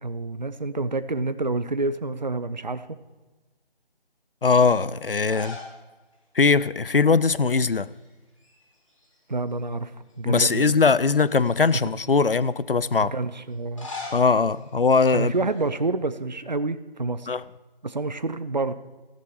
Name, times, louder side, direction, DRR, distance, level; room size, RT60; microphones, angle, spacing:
voice 1, 0.0-3.0 9.3-9.9 10.2-10.7 13.0-13.9 15.1-17.3 17.8-18.7, right 3 dB, 45° right, 0.7 m, -28 dB
voice 2, 4.4-5.6 6.3-7.9 10.3-13.1 14.1-15.3 17.3-17.4, left 4 dB, 65° left, 0.6 m, -20 dB
sound 1, 5.2-5.8 6.1-6.2 7.6-8.1 8.4-9.5 10.1-10.2 11.1-12.2 13.5-15.7, left 3 dB, 30° left, 3.1 m, -42 dB
14.5 x 13.5 x 4.8 m
figure-of-eight pair, 160°, 30 cm